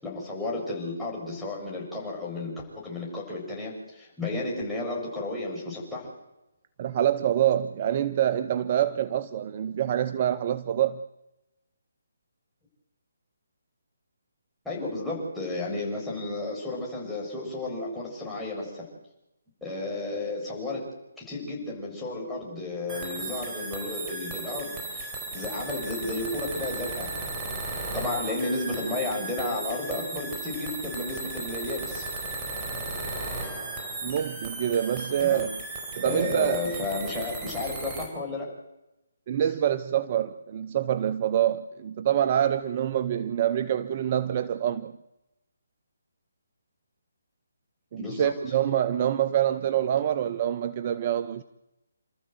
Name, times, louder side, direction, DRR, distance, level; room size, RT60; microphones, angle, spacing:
voice 1, 0.0-6.1 14.6-18.8 19.6-20.8 21.2-27.1 27.9-32.1 35.2-35.5 36.0-38.5 48.0-48.5, left 2 dB, ahead, 7.8 m, -33 dB
voice 2, 6.8-11.0 34.0-35.5 36.0-36.6 39.3-44.9 47.9-51.4, right 10 dB, 35° right, 0.8 m, -26 dB
sound 1, 22.9-38.1, right 2 dB, 20° right, 4.6 m, -35 dB
29.0 x 13.5 x 8.1 m
figure-of-eight pair, 150°, 0 cm